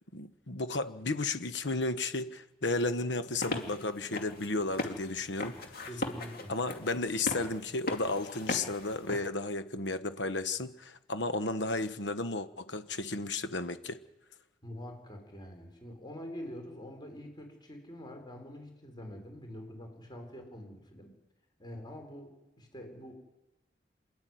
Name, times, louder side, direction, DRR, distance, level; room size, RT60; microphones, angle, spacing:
voice 1, 0.1-5.5 6.5-14.0, left 3 dB, 75° left, 1.3 m, -33 dB
sound 1, 3.2-9.2, left 2 dB, 55° left, 2.6 m, -39 dB
voice 2, 5.8-6.5 14.6-21.1 21.6-23.1, equal, 25° left, 5.1 m, -45 dB
27.0 x 12.0 x 9.4 m
head